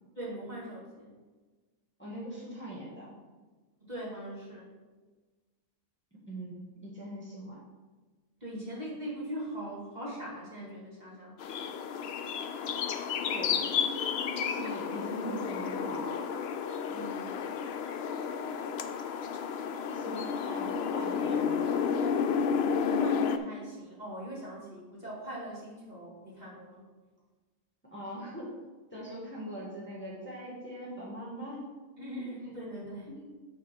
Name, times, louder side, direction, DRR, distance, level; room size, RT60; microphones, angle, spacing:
voice 1, 0.1-1.1 3.8-4.7 8.4-11.7 16.8-17.4 22.9-26.9 32.0-33.1, equal, 35° right, -6 dB, 2.2 m, -41 dB
voice 2, 2.0-3.1 6.3-7.6 12.5-12.9 13.3-13.6 14.3-16.0 19.9-21.8 27.9-28.5 28.9-31.7 32.2-32.3 33.1-33.3, right 1 dB, 10° left, -7 dB, 1.7 m, -41 dB
sound 1, 11.4-23.4, left 6 dB, 65° left, 0.7 m, -31 dB
8.4 x 3.6 x 5.9 m, 1.3 s
omnidirectional pair, 1.3 m